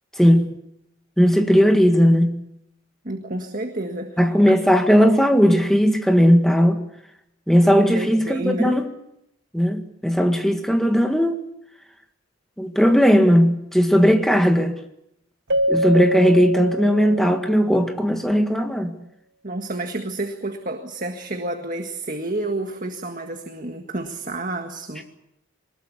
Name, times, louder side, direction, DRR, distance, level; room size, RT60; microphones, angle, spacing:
voice 1, 0.2-0.5 1.2-2.4 4.2-6.8 7.5-8.9 9.5-11.5 12.6-14.7 15.7-18.9, equal, ahead, 1.9 m, -17 dB
voice 2, 3.0-4.2 7.8-8.8 19.4-25.0, right 2 dB, 40° right, 1.8 m, -29 dB
Keyboard (musical), 15.5-17.9, equal, 55° right, 1.2 m, -25 dB
23.5 x 20.5 x 8.4 m
head